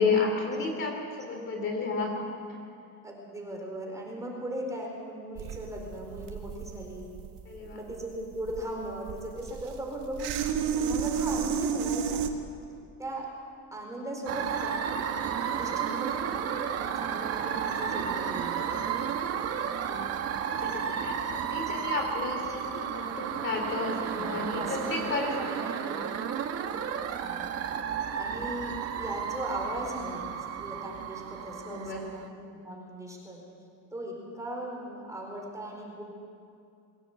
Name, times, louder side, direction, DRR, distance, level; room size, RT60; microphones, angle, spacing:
voice 1, 0.0-2.3 7.4-7.8 19.5-20.1 20.5-25.9 26.5-26.8 31.6-32.1, left 4 dB, 35° left, 2 dB, 3.0 m, -32 dB
voice 2, 3.0-7.1 7.7-12.3 13.0-13.3 13.7-14.9 15.5-18.9 21.0-21.4 24.1-26.0 27.0-27.5 28.1-30.3 30.6-33.4 33.9-36.0, right 1 dB, 10° right, -1 dB, 4.3 m, -38 dB
sound 1, 5.4-12.3, right 7 dB, 70° right, 1.8 m, -32 dB
sound 2, 14.3-32.2, right 8 dB, 45° right, 1.4 m, -33 dB
22.0 x 17.0 x 8.1 m, 2.4 s
cardioid pair, 160°, 34 cm